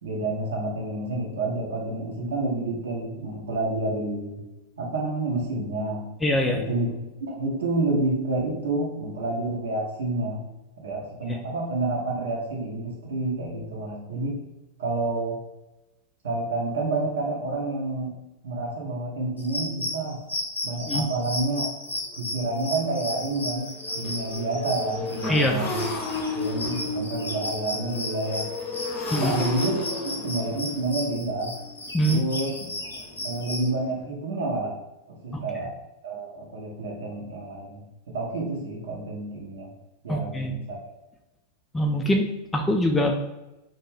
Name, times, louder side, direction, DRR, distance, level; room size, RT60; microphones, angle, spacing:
voice 1, 0.0-4.4 4.8-6.1 6.5-6.9 7.2-10.4 10.8-14.4 14.8-15.4 16.2-18.2 18.4-20.2 20.6-21.7 22.2-25.9 26.3-28.5 29.2-31.6 32.1-32.6 33.2-34.8 35.1-35.8 36.0-39.7 40.0-40.8, right 2 dB, 60° right, -1 dB, 0.7 m, -29 dB
voice 2, 6.2-6.6 20.9-21.0 25.3-25.6 29.1-29.3 31.9-32.2 35.3-35.4 40.1-40.5 41.7-43.1, equal, 10° left, 2 dB, 0.3 m, -23 dB
sound 1, 19.4-33.7, left 1 dB, 80° left, 0.5 m, -34 dB
Motorcycle, 21.4-21.5 22.0-22.2 22.4-34.0, left 3 dB, 35° left, 0.7 m, -34 dB
2.5 x 2.2 x 3.1 m, 0.96 s
figure-of-eight pair, 90°, 0 cm